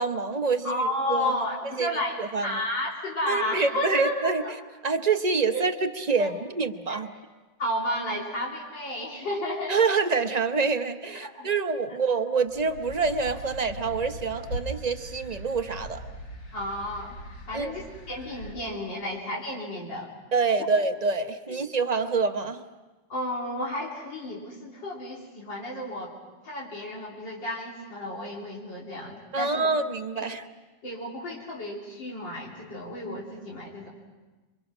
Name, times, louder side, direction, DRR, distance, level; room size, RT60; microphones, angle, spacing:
voice 1, 0.0-1.4 1.8-1.9 2.2-2.6 3.3-4.4 4.8-7.1 9.7-16.0 17.5-17.7 20.3-22.6 29.3-30.5, right 4 dB, 35° right, 7 dB, 0.7 m, -26 dB
voice 2, 0.6-2.2 2.4-4.5 5.5-5.6 6.2-6.3 6.9-7.0 7.6-9.8 11.2-11.5 16.5-17.2 17.5-20.1 21.5-21.6 23.1-26.1 26.4-29.7 30.2-30.3 30.8-33.9, left 1 dB, 85° left, -4 dB, 3.8 m, -32 dB
sound 1, 12.4-18.5, right 1 dB, 70° left, 3.5 m, -40 dB
28.0 x 24.0 x 6.1 m, 1.2 s
omnidirectional pair, 1.9 m